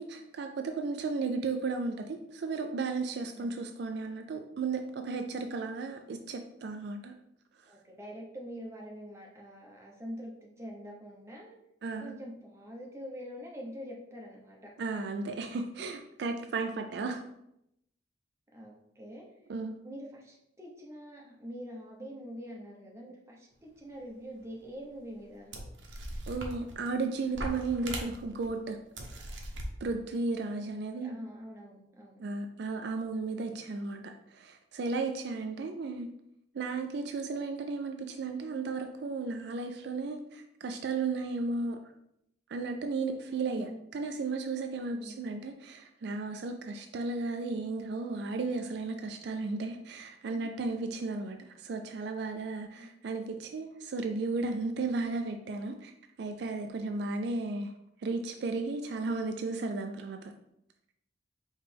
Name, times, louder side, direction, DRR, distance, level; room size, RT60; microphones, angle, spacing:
voice 1, 0.0-7.1 11.8-12.2 14.8-17.2 19.5-19.8 26.3-28.8 29.8-31.2 32.2-36.1 36.5-41.8 42.5-55.9 56.2-57.7 58.0-60.3, right 3 dB, 60° right, 5 dB, 0.3 m, -34 dB
voice 2, 3.3-3.7 7.7-11.6 12.0-14.7 16.5-16.6 18.5-19.3 19.8-25.5 30.7-32.2 35.6-35.8 43.4-43.9 44.9-45.3 50.3-50.5 52.7-53.0, equal, 15° right, -2 dB, 0.9 m, -45 dB
sound 1, 24.4-24.5 25.2-25.3 25.5-26.9 27.3-28.5 29.0-29.7, right 1 dB, 85° right, 0.8 m, -39 dB
4.9 x 3.2 x 3.4 m, 0.79 s
head